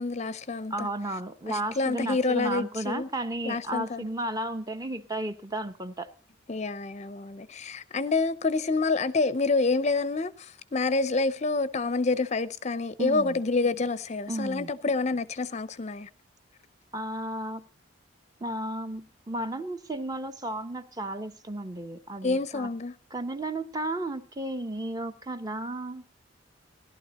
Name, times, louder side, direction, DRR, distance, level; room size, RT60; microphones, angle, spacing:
voice 1, 0.0-0.9 1.5-3.1 3.5-4.0 6.5-16.1 22.2-22.9, left 3 dB, 35° left, 0.5 m, -28 dB
voice 2, 0.7-6.1 13.0-13.4 14.3-14.7 16.9-17.6 18.4-22.7 23.1-26.0, right 1 dB, 20° right, 0.8 m, -33 dB
17.0 x 12.0 x 4.1 m
head